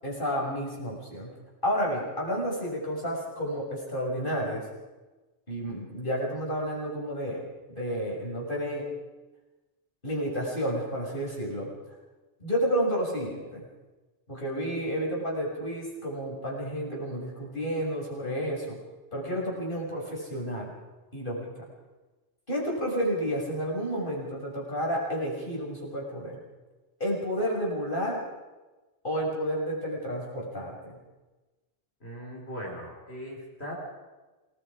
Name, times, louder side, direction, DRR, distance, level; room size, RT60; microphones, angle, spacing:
voice 1, 0.0-1.3 1.6-4.6 5.5-7.4 7.7-8.9 10.0-11.7 12.4-13.6 14.3-18.8 19.1-20.7 21.1-21.5 22.5-26.4 27.0-28.2 29.0-30.8, equal, 50° left, -3 dB, 6.9 m, -31 dB
voice 2, 32.0-33.7, equal, 65° left, -2 dB, 5.3 m, -39 dB
28.0 x 20.0 x 5.1 m, 1.2 s
omnidirectional pair, 1.2 m